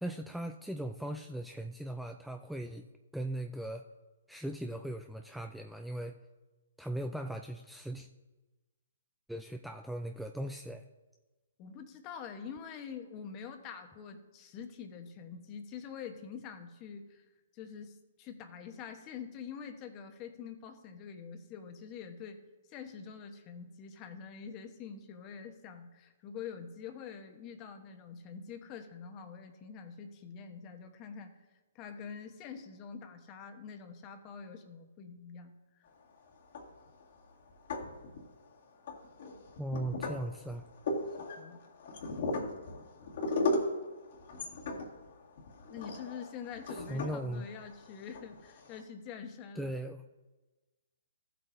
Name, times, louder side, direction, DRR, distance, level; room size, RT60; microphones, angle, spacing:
voice 1, 0.0-2.9 3.1-3.9 4.3-6.1 6.8-8.1 9.3-10.8 39.6-40.7 46.7-47.5 49.6-50.0, right 1 dB, ahead, 4 dB, 0.4 m, -38 dB
voice 2, 11.6-17.2 17.5-22.4 22.7-31.3 31.7-35.5 41.2-41.6 45.7-49.7, left 6 dB, 30° left, 7 dB, 1.1 m, -46 dB
sound 1, 36.4-37.0 37.5-38.4 38.9-48.8, left 2 dB, 60° left, 2.0 m, -37 dB
15.0 x 7.7 x 2.7 m, 1.2 s
hypercardioid pair, 140°, 0 cm